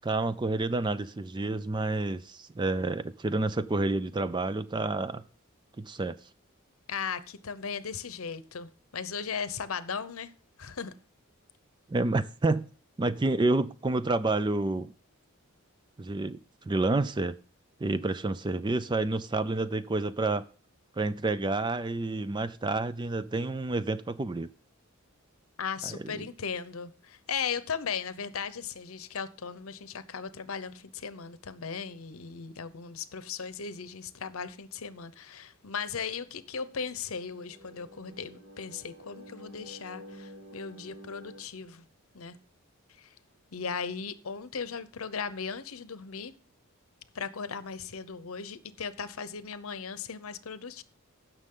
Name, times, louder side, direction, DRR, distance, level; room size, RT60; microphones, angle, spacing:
voice 1, 0.0-5.2 5.8-6.2 11.9-12.7 13.0-14.9 16.0-16.4 16.6-17.4 17.8-20.5 21.0-24.5 25.8-26.3, right 2 dB, 20° right, 0.4 m, -29 dB
voice 2, 6.9-10.3 10.6-10.9 25.6-41.9 42.1-42.4 43.0-43.1 43.5-46.3 47.1-50.8, left 6 dB, 70° left, 0.8 m, -37 dB
sound 1, 36.4-41.4, equal, 60° right, 2.9 m, -50 dB
16.0 x 6.3 x 3.8 m
head